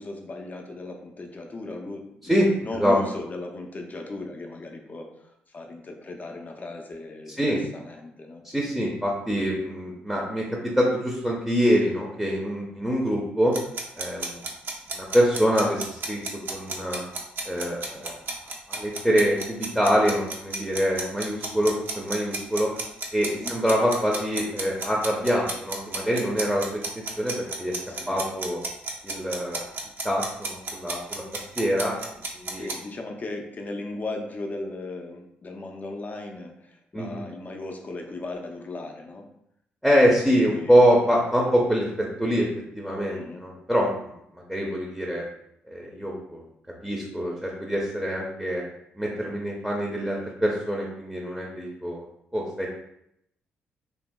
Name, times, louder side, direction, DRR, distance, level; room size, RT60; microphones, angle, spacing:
voice 1, 0.0-8.4 23.2-23.5 27.8-28.2 32.5-39.3 40.3-40.9 43.1-43.4, left 2 dB, 35° left, 2 dB, 0.5 m, -37 dB
voice 2, 8.4-13.5 14.0-14.4 14.9-16.2 16.5-17.0 17.5-18.1 18.7-22.7 23.1-27.8 28.1-28.6 29.0-29.6 30.0-32.0 32.3-32.7 36.9-37.2 39.8-41.9 42.2-42.5 42.7-43.9 44.5-45.2 45.7-46.4 46.8-48.6 49.0-52.0 52.3-52.8, equal, ahead, -2 dB, 0.6 m, -25 dB
sound 1, 13.5-32.7, right 3 dB, 50° right, 0.6 m, -32 dB
2.8 x 2.6 x 2.2 m, 0.77 s
hypercardioid pair, 45°, 5 cm